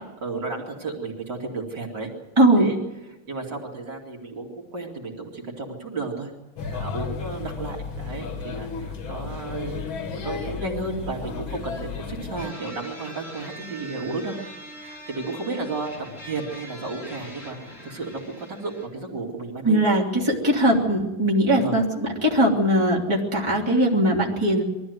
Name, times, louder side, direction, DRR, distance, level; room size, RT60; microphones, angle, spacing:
voice 1, 0.0-2.1 2.6-2.8 3.3-6.3 6.7-9.8 10.1-14.4 14.8-15.9 16.2-19.8 21.5-21.8, right 3 dB, 60° right, -1 dB, 3.4 m, -33 dB
voice 2, 2.4-2.7 19.6-24.6, right 1 dB, 15° right, -2 dB, 3.2 m, -20 dB
Male speech man speaking / Child speech kid speaking / Chatter, 6.6-12.5, left 5 dB, 80° left, 2.3 m, -33 dB
sound 1, 12.4-18.9, equal, 30° left, 6.7 m, -42 dB
23.0 x 14.0 x 9.5 m, 1.1 s
omnidirectional pair, 2.2 m